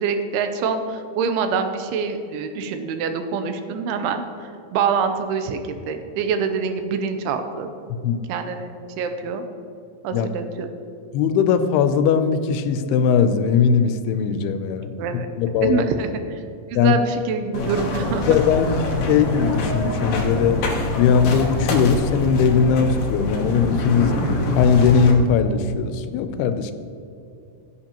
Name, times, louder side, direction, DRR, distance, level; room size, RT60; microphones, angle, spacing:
voice 1, 0.0-7.7 8.3-9.4 10.0-10.7 15.0-15.3 15.6-16.4 16.7-18.3, right 5 dB, 85° right, 7 dB, 2.8 m, -25 dB
voice 2, 11.1-14.9 15.4-15.8 16.8-16.9 18.3-20.6 20.9-24.1 24.5-26.7, left 6 dB, 90° left, 10 dB, 2.6 m, -19 dB
sound 1, 17.5-25.1, left 2 dB, 70° left, 1.6 m, -24 dB
16.0 x 8.1 x 3.0 m, 2.7 s
omnidirectional pair, 4.5 m